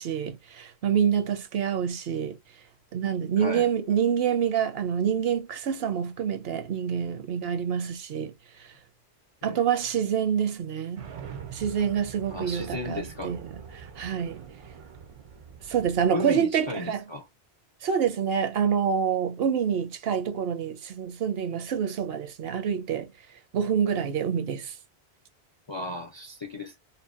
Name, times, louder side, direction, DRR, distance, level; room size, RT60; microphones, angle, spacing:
voice 1, 0.0-2.4 2.9-8.3 9.4-11.1 11.5-14.4 15.7-17.0 17.8-23.1 23.5-24.7, right 8 dB, 70° right, 0.8 m, -27 dB
voice 2, 3.4-3.7 9.4-9.6 12.3-13.3 16.1-17.3 25.7-26.7, left 3 dB, 50° left, 0.3 m, -34 dB
sound 1, 11.0-16.1, right 7 dB, 55° right, 0.4 m, -43 dB
2.7 x 2.0 x 2.3 m
omnidirectional pair, 1.1 m